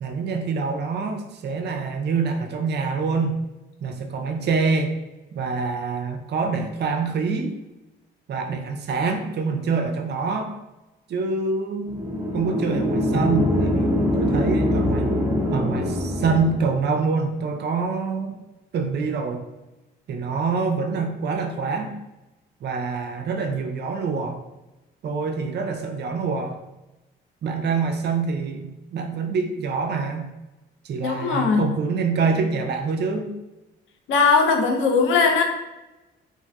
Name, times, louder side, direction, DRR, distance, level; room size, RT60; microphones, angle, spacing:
voice 1, 0.0-3.4 3.8-5.0 5.4-7.6 8.3-10.6 11.1-11.9 12.3-15.2 15.5-18.3 18.7-19.4 20.1-21.9 22.6-24.4 25.0-26.6 27.4-30.3 30.8-33.3, right 4 dB, 60° right, 4 dB, 0.5 m, -26 dB
sound 1, 11.9-16.8, left 1 dB, 10° right, 0.6 m, -23 dB
voice 2, 31.0-31.7 34.1-35.4, left 5 dB, 80° left, 3 dB, 0.5 m, -19 dB
3.2 x 2.6 x 2.2 m, 0.99 s
cardioid pair, 90°, 20 cm